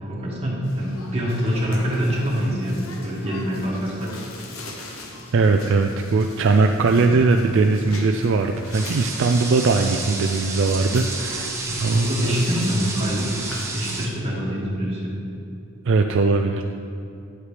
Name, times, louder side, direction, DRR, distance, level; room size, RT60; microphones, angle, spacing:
voice 1, 0.0-4.1 11.7-13.3 13.7-15.1, equal, 30° right, -5 dB, 1.9 m, -25 dB
sound 1, 0.6-14.2, left 1 dB, 80° left, 1.1 m, -40 dB
voice 2, 5.3-12.4 15.8-16.6, right 3 dB, 65° right, 4 dB, 0.4 m, -20 dB
sound 2, 8.7-14.1, right 3 dB, 15° right, 0.8 m, -31 dB
9.4 x 8.1 x 3.3 m, 2.7 s
head